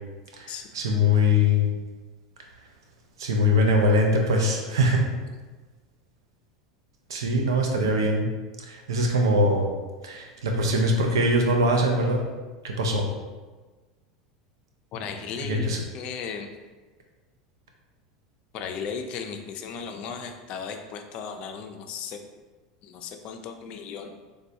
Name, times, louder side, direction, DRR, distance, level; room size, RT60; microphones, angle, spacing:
voice 1, 0.4-1.7 3.2-5.0 7.1-8.3 8.7-9.7 10.0-12.2 12.6-13.0 15.5-15.8, left 1 dB, 75° right, 2 dB, 0.5 m, -22 dB
voice 2, 14.9-15.7 15.9-16.5 18.5-22.2 22.8-24.2, left 6 dB, 50° left, 5 dB, 0.3 m, -36 dB
3.3 x 2.2 x 2.7 m, 1.3 s
hypercardioid pair, 85°, 2 cm